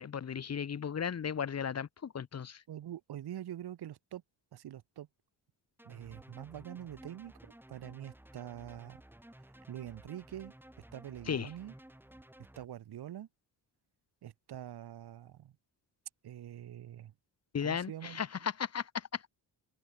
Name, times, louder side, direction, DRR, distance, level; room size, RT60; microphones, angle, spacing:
voice 1, 0.0-2.6 11.3-11.5 17.5-19.3, left 7 dB, 35° left, 1.1 m, -36 dB
voice 2, 2.7-4.2 4.5-5.1 5.8-9.0 9.7-10.5 10.9-11.7 12.5-13.3 14.2-15.5 16.2-17.1 17.6-18.2, right 11 dB, 65° right, 1.6 m, -45 dB
sound 1, 5.8-12.7, right 1 dB, 5° right, 5.0 m, -55 dB
open air
cardioid pair, 125°, 42 cm